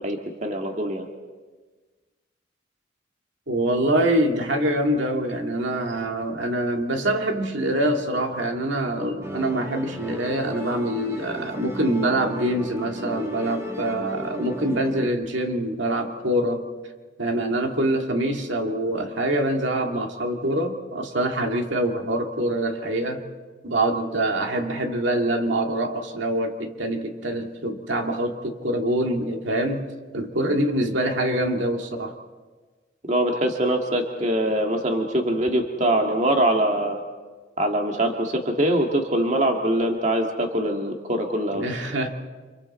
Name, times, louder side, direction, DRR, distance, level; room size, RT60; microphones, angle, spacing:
voice 1, 0.0-1.1 33.1-37.0 37.6-41.6, right 1 dB, 40° right, 2 dB, 1.8 m, -23 dB
voice 2, 3.5-16.7 17.2-23.2 23.6-32.2 41.5-42.1, right 1 dB, 75° right, 3 dB, 2.3 m, -25 dB
Musical instrument, 9.2-15.1, equal, 15° right, 1.6 m, -35 dB
30.0 x 26.5 x 4.3 m, 1.4 s
head